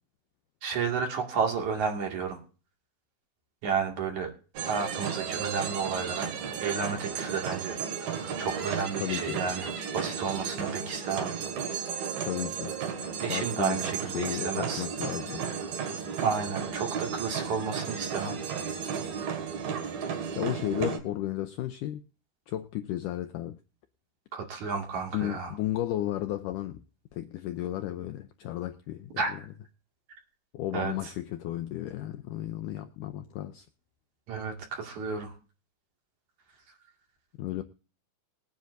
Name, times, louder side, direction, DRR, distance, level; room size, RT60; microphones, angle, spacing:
voice 1, 0.6-2.4 3.6-4.3 4.7-6.3 6.6-7.8 8.4-9.7 9.9-11.3 13.2-14.8 16.2-18.4 24.3-25.5 29.2-29.3 30.7-30.9 34.3-35.3, right 5 dB, 55° right, 3.3 m, -31 dB
sound 1, 4.6-21.0, right 7 dB, 70° right, 3.8 m, -34 dB
voice 2, 9.0-9.4 12.2-12.8 13.3-15.5 20.4-22.0 22.5-23.6 25.1-26.8 27.1-29.4 30.5-33.7 37.4-37.6, left 13 dB, 80° left, 1.9 m, -33 dB
21.0 x 9.7 x 2.6 m
omnidirectional pair, 4.4 m